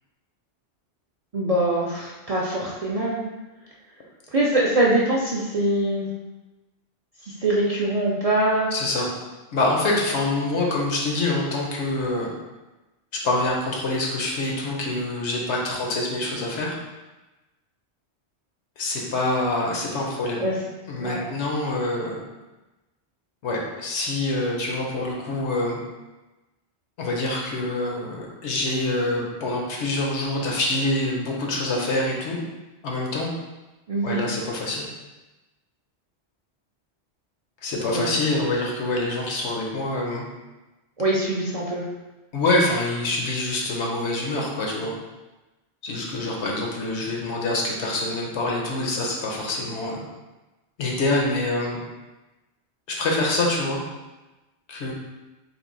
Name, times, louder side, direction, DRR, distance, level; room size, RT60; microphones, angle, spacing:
voice 1, 1.3-3.2 4.3-6.1 7.4-8.7 20.4-20.5 21.0-21.2 33.9-34.2 37.9-38.1 41.0-41.8, right 1 dB, 50° right, -5 dB, 0.4 m, -23 dB
voice 2, 8.7-9.1 9.5-12.3 13.1-16.7 18.8-20.4 20.9-22.2 23.4-25.8 27.0-32.4 32.8-33.3 34.0-34.9 37.6-40.3 42.3-44.9 45.8-50.0 50.8-51.8 52.9-53.8 54.7-54.9, left 2 dB, 85° left, -1 dB, 1.1 m, -25 dB
3.4 x 2.6 x 3.8 m, 1.1 s
omnidirectional pair, 1.1 m